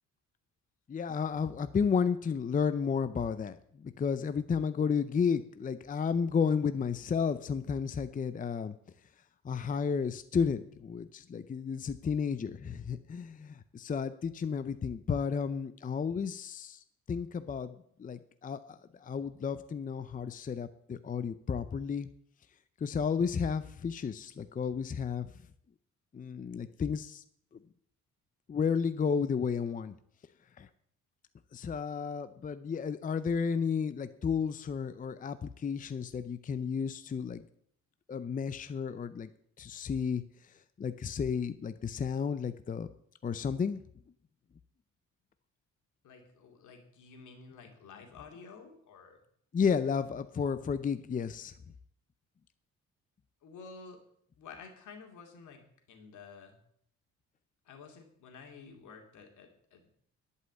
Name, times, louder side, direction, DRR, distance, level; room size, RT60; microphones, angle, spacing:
voice 1, 0.9-8.7 9.4-22.1 22.8-25.3 26.1-27.2 28.5-29.9 30.6-30.7 31.5-37.4 38.1-39.3 39.6-40.2 40.8-42.9 43.2-43.8 49.5-51.5, left 6 dB, 25° left, 12 dB, 0.6 m, -32 dB
voice 2, 46.0-49.2 53.4-54.0 54.4-55.6 55.9-56.6 57.6-59.9, left 5 dB, 75° left, 3 dB, 2.6 m, -51 dB
11.0 x 5.6 x 8.3 m, 0.67 s
cardioid pair, 90°, 30 cm